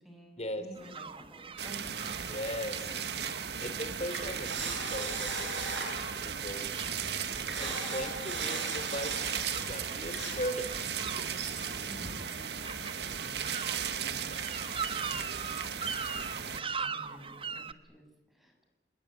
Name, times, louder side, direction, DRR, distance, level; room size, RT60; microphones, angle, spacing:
voice 1, 0.0-2.2 4.3-4.8 6.4-6.7 11.8-13.6 14.0-14.4 14.7-16.1 16.4-18.6, equal, ahead, 3 dB, 7.2 m, -53 dB
sound 1, 0.8-17.7, right 5 dB, 30° right, 1.3 m, -42 dB
sound 2, 1.6-16.6, right 7 dB, 70° right, 1.7 m, -37 dB
sound 3, 1.7-12.2, right 4 dB, 85° right, 7.7 m, -40 dB
voice 2, 2.3-2.9 3.6-5.8 6.2-6.7 7.4-11.4, equal, 40° left, 10 dB, 3.5 m, -39 dB
29.0 x 21.0 x 9.1 m, 0.93 s
head